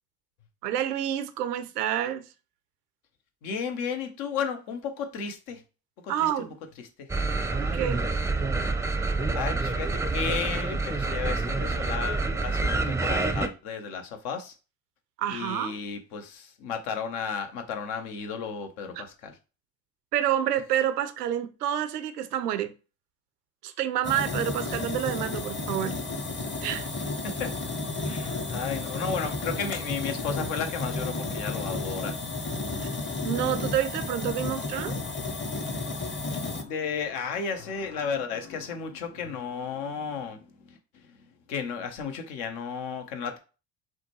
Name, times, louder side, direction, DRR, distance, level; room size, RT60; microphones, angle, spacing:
voice 1, 0.6-2.2 6.1-6.6 7.6-8.0 15.2-15.8 20.1-22.7 23.6-26.0 26.6-26.9 33.2-35.0, right 11 dB, 85° right, 0.6 m, -28 dB
voice 2, 3.4-5.6 6.0-6.3 6.8-7.8 8.9-14.5 15.3-19.3 24.7-25.0 27.2-27.5 28.0-32.2 36.0-41.2 41.5-43.4, left 6 dB, 70° left, 1.0 m, -34 dB
sound 1, 7.1-13.5, right 3 dB, 5° right, 0.5 m, -27 dB
sound 2, 24.0-36.6, left 3 dB, 25° left, 0.9 m, -32 dB
6.1 x 2.2 x 3.0 m
figure-of-eight pair, 50°, 46 cm